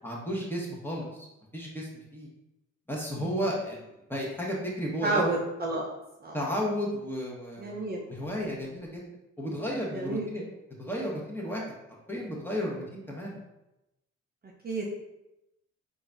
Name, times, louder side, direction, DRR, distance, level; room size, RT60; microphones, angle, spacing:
voice 1, 0.0-1.3 1.5-2.3 2.9-5.4 6.3-9.0 9.4-10.5 10.8-11.6 12.1-13.4, equal, 5° left, -3 dB, 1.1 m, -33 dB
voice 2, 5.0-5.9 6.2-6.4 7.6-8.0 9.9-10.3 14.6-14.9, right 2 dB, 30° right, -2 dB, 0.6 m, -30 dB
3.8 x 2.6 x 3.4 m, 0.91 s
cardioid pair, 90°, 30 cm